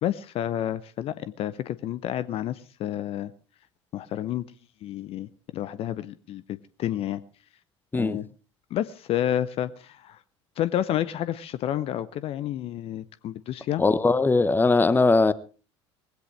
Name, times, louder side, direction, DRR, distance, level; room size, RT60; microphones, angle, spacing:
voice 1, 0.0-3.3 3.9-4.4 4.8-7.2 8.0-8.3 8.7-10.2 10.6-13.8, left 11 dB, 40° left, 0.6 m, -30 dB
voice 2, 13.8-15.3, left 3 dB, 15° left, 0.8 m, -20 dB
19.5 x 16.0 x 3.3 m
figure-of-eight pair, 65°, 15 cm